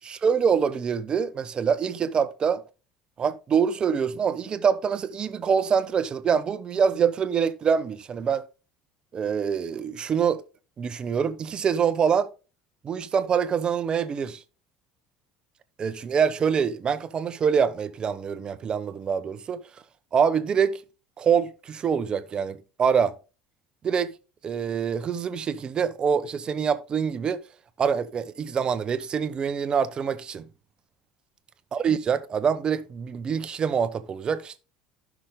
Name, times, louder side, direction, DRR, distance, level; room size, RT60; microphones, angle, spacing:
voice 1, 0.0-2.6 3.2-8.4 9.1-10.4 10.8-12.3 12.8-14.4 15.8-19.6 20.1-20.8 21.2-23.1 23.8-24.1 24.4-27.4 27.8-30.5 31.7-34.6, right 7 dB, 35° right, 1.0 m, -25 dB
15.5 x 6.1 x 2.2 m
supercardioid pair, 105°, 3 cm